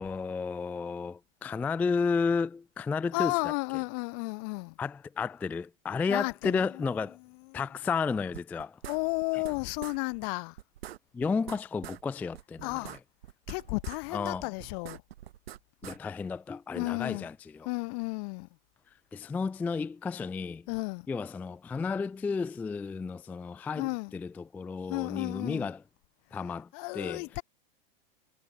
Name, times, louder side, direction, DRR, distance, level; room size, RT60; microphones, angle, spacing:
voice 1, 0.0-3.3 4.8-7.2 7.5-8.8 11.1-12.7 14.1-14.5 15.8-17.3 19.1-20.6 21.1-25.8 26.3-26.7 26.9-27.2, left 5 dB, 5° left, 0.3 m, -32 dB
voice 2, 3.1-4.8 6.1-7.6 8.8-10.6 12.6-13.0 13.5-15.0 16.7-17.3 17.6-18.5 20.7-21.1 23.8-24.1 24.9-25.7 26.7-27.4, left 36 dB, 40° left, 0.6 m, -33 dB
sound 1, 8.3-9.6 9.8-10.0 10.2-10.3 10.6-12.0 12.3-14.0 14.2-16.0, right 12 dB, 80° right, 4.1 m, -44 dB
supercardioid pair, 145°, 30 cm